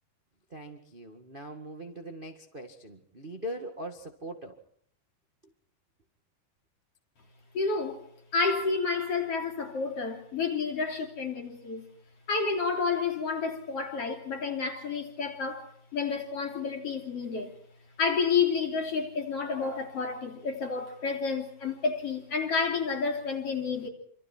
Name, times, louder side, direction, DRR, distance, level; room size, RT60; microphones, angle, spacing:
voice 1, 0.5-4.6 5.4-5.5, right 1 dB, 25° right, 1.0 m, -41 dB
voice 2, 7.5-8.0 8.3-11.9 12.3-17.5 18.0-23.9, left 5 dB, 40° left, 4.0 m, -30 dB
27.0 x 26.5 x 4.5 m
omnidirectional pair, 4.3 m